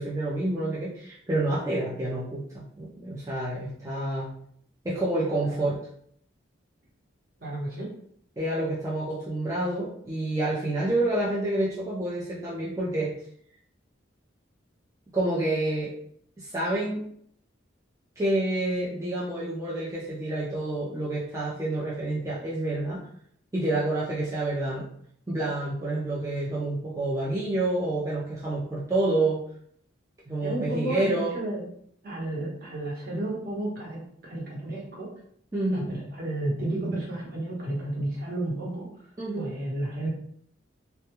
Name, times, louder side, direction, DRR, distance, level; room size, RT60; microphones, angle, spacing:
voice 1, 0.0-4.3 4.8-5.8 8.4-13.1 15.1-15.9 16.4-17.0 18.2-23.0 23.5-24.9 25.3-29.4 30.3-31.3 35.5-35.9 39.2-39.5, right 2 dB, 15° right, -8 dB, 0.3 m, -28 dB
voice 2, 7.4-7.9 30.4-31.7 32.0-35.1 35.7-38.9 39.3-40.1, right 1 dB, 50° right, -4 dB, 0.8 m, -32 dB
2.2 x 2.1 x 2.9 m, 0.66 s
head